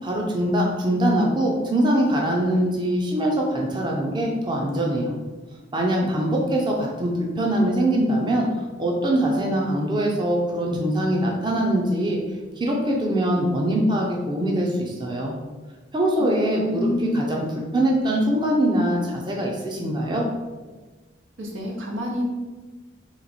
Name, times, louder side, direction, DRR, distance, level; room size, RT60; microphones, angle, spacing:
voice 1, 0.0-5.1 5.7-12.2 12.6-15.3 15.9-16.9 17.1-17.4 17.7-20.2, right 1 dB, 25° right, -1 dB, 0.5 m, -23 dB
voice 2, 16.2-17.2 21.4-22.2, left 1 dB, 90° right, -1 dB, 0.9 m, -28 dB
3.5 x 3.1 x 4.0 m, 1.3 s
head